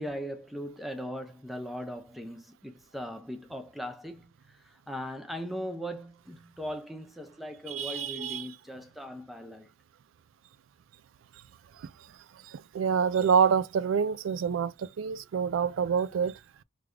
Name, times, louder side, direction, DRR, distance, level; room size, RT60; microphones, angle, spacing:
voice 1, 0.0-9.7, equal, ahead, 0.5 m, -39 dB
voice 2, 7.7-8.5 11.8-11.9 12.5-16.3, right 6 dB, 85° right, 0.3 m, -27 dB
3.3 x 2.3 x 3.6 m
head